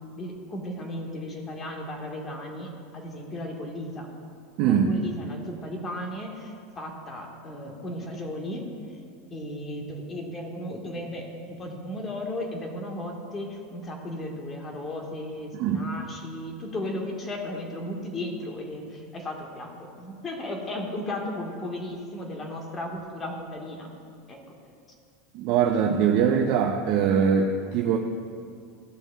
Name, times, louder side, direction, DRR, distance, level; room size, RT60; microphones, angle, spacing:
voice 1, 0.2-4.1 4.7-8.6 8.9-9.0 9.3-23.9 24.3-24.4, left 1 dB, 25° left, 1 dB, 1.4 m, -35 dB
voice 2, 4.6-4.9 15.5-15.8 25.3-28.0, right 7 dB, 55° right, 2 dB, 0.6 m, -22 dB
14.0 x 6.1 x 2.3 m, 2.3 s
supercardioid pair, 125°, 0 cm